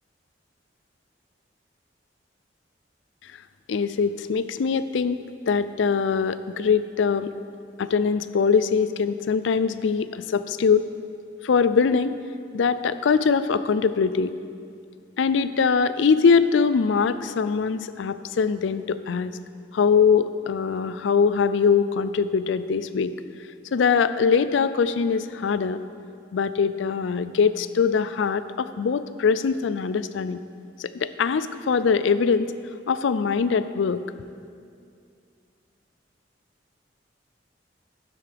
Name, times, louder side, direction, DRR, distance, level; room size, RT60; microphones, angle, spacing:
voice 1, 3.7-7.3 7.8-10.8 11.4-12.2 12.5-14.3 15.2-19.3 19.7-23.1 23.7-25.8 26.3-30.4 30.8-32.5 32.9-34.0, left 5 dB, 90° left, 13 dB, 0.4 m, -22 dB
12.0 x 9.5 x 3.5 m, 2.3 s
head